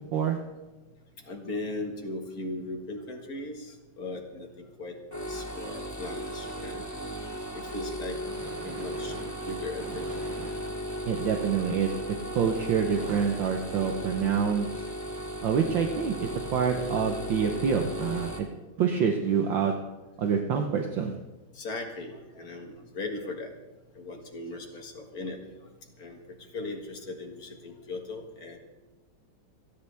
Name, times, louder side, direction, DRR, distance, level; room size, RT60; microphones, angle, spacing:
voice 1, 1.3-5.0 5.3-6.8 7.5-8.2 8.6-9.2 9.5-10.1 21.5-23.5 24.0-25.4 26.0-26.2 26.5-28.6, left 2 dB, 45° left, 2 dB, 2.2 m, -38 dB
sound 1, 5.1-18.4, equal, 10° left, 1.3 m, -36 dB
voice 2, 8.3-9.3 9.8-10.5 11.1-11.9 12.3-14.9 15.4-18.5 18.8-19.7 20.2-21.2, right 7 dB, 65° right, 3 dB, 1.6 m, -27 dB
27.5 x 10.0 x 3.5 m, 1.1 s
omnidirectional pair, 2.3 m